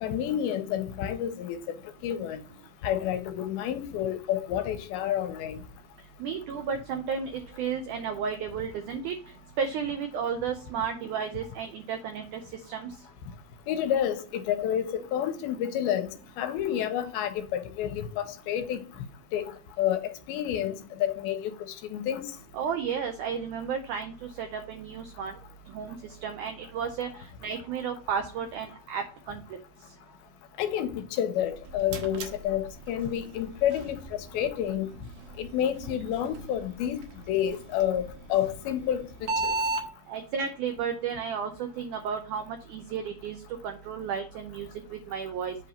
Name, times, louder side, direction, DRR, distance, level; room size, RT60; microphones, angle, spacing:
voice 1, 0.0-1.6 2.0-2.4 2.8-5.6 13.7-18.8 19.3-19.5 19.8-22.2 30.6-34.9 35.4-37.0 37.3-38.0 38.3-39.0 39.4-39.6, left 10 dB, 85° left, 2.5 m, -29 dB
voice 2, 6.2-9.1 9.6-12.4 12.7-12.9 22.5-25.3 25.7-26.0 26.2-29.4 40.1-43.4 43.6-45.6, right 6 dB, 85° right, 1.7 m, -33 dB
sound 1, 31.4-39.9, right 2 dB, 70° right, 2.2 m, -37 dB
8.0 x 2.9 x 5.3 m
omnidirectional pair, 4.4 m